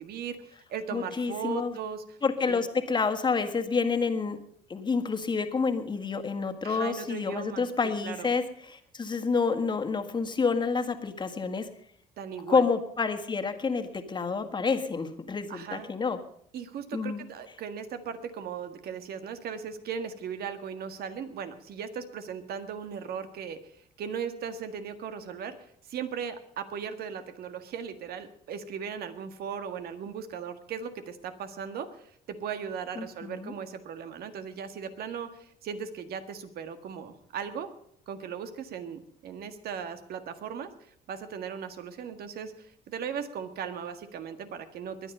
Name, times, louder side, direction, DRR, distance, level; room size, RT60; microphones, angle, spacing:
voice 1, 0.0-2.2 2.5-2.6 6.6-7.7 8.0-8.3 12.2-12.6 15.5-15.9 16.5-23.6 24.0-37.7 38.1-40.7 41.1-45.1, right 7 dB, 65° right, 9 dB, 1.8 m, -37 dB
voice 2, 0.9-1.7 2.2-4.4 4.7-11.7 12.5-16.2 16.9-17.2 33.0-33.5, left 5 dB, 25° left, 7 dB, 1.7 m, -28 dB
21.5 x 9.9 x 5.5 m, 0.65 s
cardioid pair, 110°, 17 cm